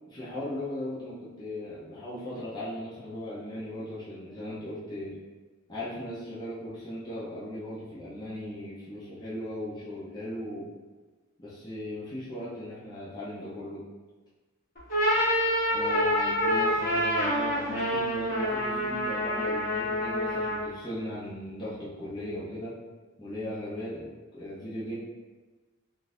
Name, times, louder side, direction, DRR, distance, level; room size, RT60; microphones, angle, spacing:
voice 1, 0.1-5.2 5.7-10.7 11.4-13.8 15.7-22.8 23.2-25.0, left 1 dB, 20° left, -10 dB, 0.7 m, -38 dB
sound 1, 14.8-20.8, equal, 40° left, 1.0 m, -27 dB
3.7 x 2.5 x 2.6 m, 1.3 s
head